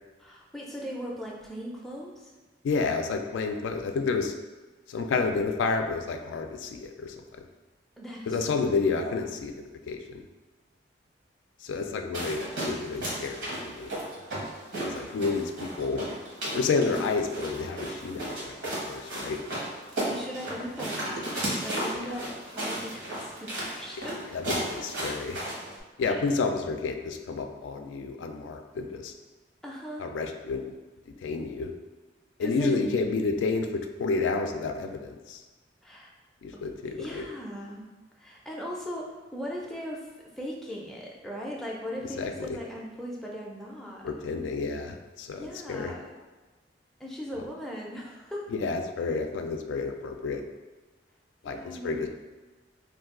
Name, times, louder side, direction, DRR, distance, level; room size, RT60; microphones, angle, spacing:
voice 1, 0.2-2.3 8.0-8.7 9.0-9.2 16.9-17.0 20.1-24.3 24.8-24.9 26.1-26.2 29.6-30.1 32.4-32.9 35.8-36.1 36.5-36.6 37.0-37.9 38.2-40.1 40.4-44.1 45.3-46.1 47.0-48.5 51.4-52.1, equal, ahead, -3 dB, 0.4 m, -39 dB
voice 2, 2.6-4.3 4.9-7.2 8.3-10.2 11.6-14.0 14.8-16.0 16.5-18.6 18.9-19.4 24.3-25.4 26.0-29.1 30.0-30.7 31.2-31.7 32.4-35.4 36.4-37.3 42.2-42.3 44.0-45.9 48.5-50.4 51.4-52.1, left 4 dB, 90° left, 5 dB, 0.3 m, -30 dB
sound 1, 12.1-25.8, right 1 dB, 75° right, 1.0 m, -34 dB
2.6 x 2.3 x 3.6 m, 1.2 s
head